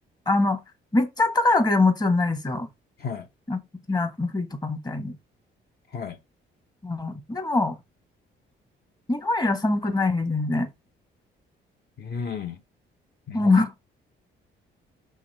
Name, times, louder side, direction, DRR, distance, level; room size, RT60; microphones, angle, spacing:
voice 1, 0.3-0.6 0.9-2.7 3.5-3.6 3.9-5.2 6.8-7.8 9.1-10.7 13.3-13.7, left 2 dB, 20° left, 1.3 m, -23 dB
voice 2, 12.0-12.6 13.3-13.5, left 6 dB, 50° left, 0.9 m, -33 dB
6.2 x 3.6 x 4.4 m
cardioid pair, 90°, 20 cm